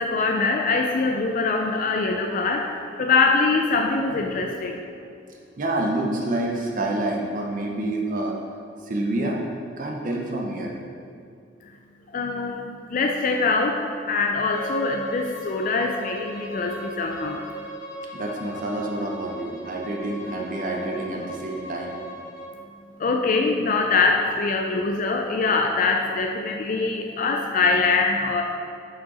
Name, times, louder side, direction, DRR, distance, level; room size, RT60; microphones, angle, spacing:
voice 1, 0.0-4.8 12.1-17.5 23.0-28.4, left 4 dB, 45° left, 3 dB, 0.3 m, -23 dB
voice 2, 5.6-8.4 8.8-9.4 9.8-10.8 18.1-22.0, right 1 dB, 45° right, 0 dB, 0.6 m, -28 dB
Bowed string instrument, 14.5-22.5, right 1 dB, 65° left, 1.0 m, -38 dB
6.2 x 5.0 x 4.1 m, 2.4 s
head